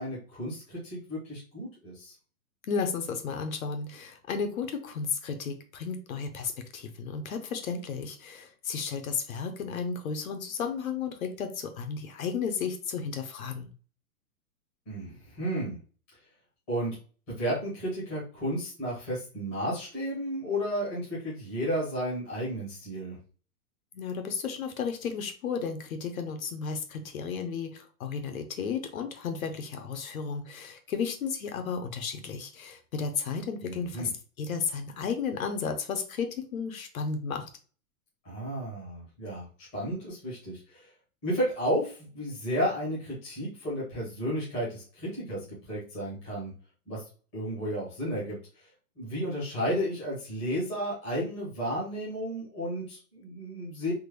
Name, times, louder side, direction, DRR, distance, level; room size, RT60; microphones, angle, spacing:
voice 1, 0.0-2.1 14.9-15.8 16.7-16.9 17.3-23.2 33.6-34.1 38.2-39.5 39.7-40.8 41.2-46.5 46.9-47.0 47.3-48.4 49.0-53.9, equal, 10° left, -8 dB, 0.7 m, -32 dB
voice 2, 2.7-13.7 23.9-34.1 34.4-37.5, left 5 dB, 65° left, 6 dB, 0.7 m, -33 dB
3.5 x 2.1 x 3.1 m, 0.37 s
hypercardioid pair, 175°, 45 cm